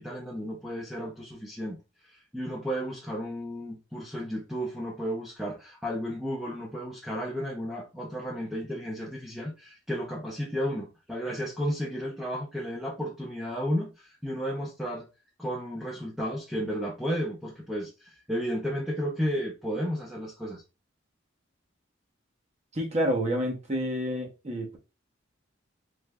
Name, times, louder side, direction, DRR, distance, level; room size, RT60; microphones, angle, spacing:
voice 1, 0.0-1.8 2.0-15.1 15.4-20.6, equal, ahead, 0.6 m, -33 dB
voice 2, 22.7-24.8, equal, 35° right, 0.8 m, -29 dB
3.4 x 3.1 x 2.2 m
head